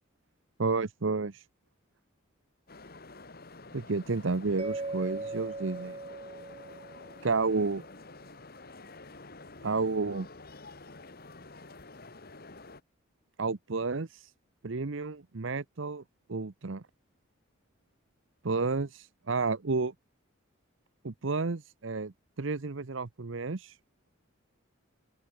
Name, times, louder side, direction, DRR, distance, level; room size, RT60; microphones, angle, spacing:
voice 1, 0.6-1.4 3.7-6.0 7.2-7.8 9.6-10.3 13.4-14.3 14.6-16.0 16.3-16.8 18.4-19.9 21.0-22.1 22.4-23.8, right 3 dB, 65° right, 0.8 m, -31 dB
sound 1, 2.7-12.8, left 3 dB, 45° left, 2.0 m, -49 dB
Mallet percussion, 4.6-7.6, right 3 dB, 25° right, 0.6 m, -39 dB
open air
head